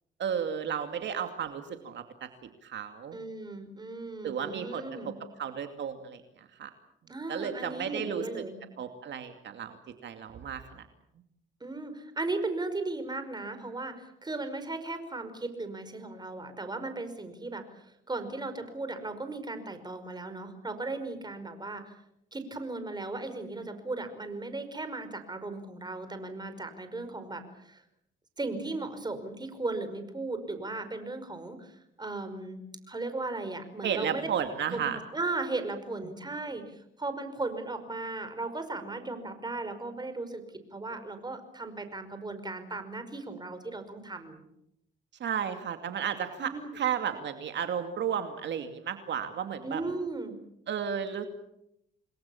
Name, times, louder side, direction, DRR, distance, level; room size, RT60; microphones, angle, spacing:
voice 1, 0.2-3.2 4.2-6.7 7.3-8.4 8.8-10.9 33.8-35.0 45.2-49.8 50.7-51.3, right 8 dB, 65° right, 7 dB, 2.5 m, -33 dB
voice 2, 3.1-5.1 7.1-8.6 11.6-21.9 22.3-27.8 28.4-31.7 32.0-32.6 32.9-34.3 34.6-40.4 40.7-44.4 46.4-46.7 49.6-50.3, right 2 dB, 20° right, 9 dB, 5.3 m, -36 dB
28.5 x 21.0 x 7.2 m, 0.79 s
cardioid pair, 90°, 20 cm